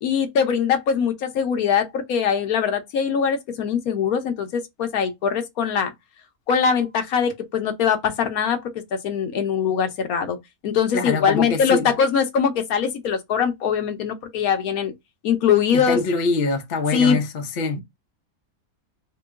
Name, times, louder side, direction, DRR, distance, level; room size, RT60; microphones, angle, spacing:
voice 1, 0.0-5.9 6.5-8.6 8.9-10.4 10.6-14.9 15.2-16.0 16.9-17.2, left 7 dB, 75° left, 1.2 m, -22 dB
voice 2, 10.9-11.9 15.7-17.8, left 3 dB, 45° left, 0.7 m, -24 dB
3.1 x 2.9 x 3.5 m
omnidirectional pair, 1.6 m